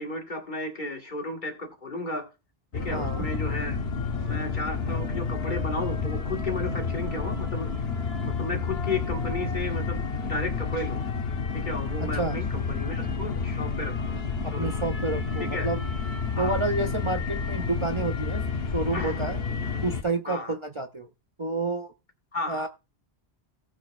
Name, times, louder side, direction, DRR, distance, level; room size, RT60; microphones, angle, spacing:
voice 1, 0.0-2.3 2.7-3.8 4.2-7.7 8.2-11.0 11.5-14.3 14.5-14.9 15.4-15.7 16.4-16.6 18.9-19.3 19.6-19.8 20.3-20.6 22.3-22.7, left 2 dB, 50° left, 2 dB, 2.0 m, -34 dB
sound 1, 2.7-20.0, left 5 dB, 75° left, 1.3 m, -30 dB
voice 2, 2.9-3.2 12.0-12.4 14.4-15.8 16.4-18.4 18.7-19.4 19.8-21.1 21.4-21.9 22.5-22.7, right 3 dB, 35° right, 4 dB, 0.6 m, -29 dB
18.0 x 6.2 x 2.4 m, 0.29 s
omnidirectional pair, 1.1 m